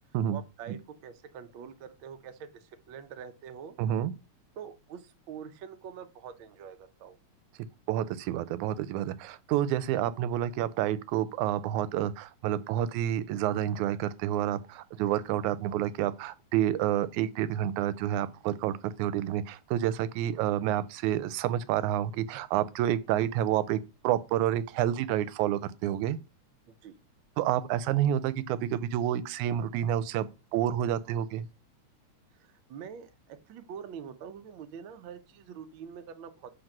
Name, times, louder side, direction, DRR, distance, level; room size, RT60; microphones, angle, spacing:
voice 1, 0.3-3.8 4.6-7.2 26.8-26.9 32.4-36.5, right 7 dB, 70° right, 1.2 m, -45 dB
voice 2, 3.8-4.1 7.9-26.2 27.4-31.5, right 11 dB, 90° right, 2.0 m, -29 dB
6.6 x 3.9 x 5.9 m
omnidirectional pair, 3.3 m